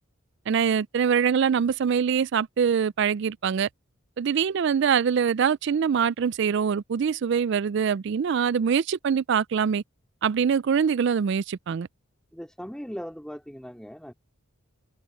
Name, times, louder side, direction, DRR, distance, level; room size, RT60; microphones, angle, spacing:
voice 1, 0.5-3.7 4.2-9.8 10.2-11.9, right 7 dB, 55° right, 0.3 m, -24 dB
voice 2, 12.3-14.1, equal, 5° left, 2.3 m, -38 dB
head